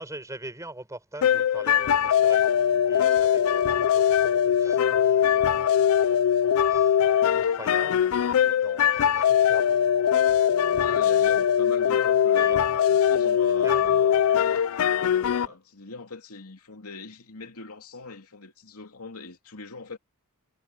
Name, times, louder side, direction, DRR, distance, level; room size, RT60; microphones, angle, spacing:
voice 1, 0.0-11.3 12.3-12.6 13.4-14.6 15.4-15.6, right 1 dB, 15° right, 6.3 m, -44 dB
sound 1, 1.2-15.5, left 9 dB, 70° left, 0.4 m, -21 dB
voice 2, 10.7-14.4 15.0-20.0, left 3 dB, 85° left, 2.8 m, -42 dB
head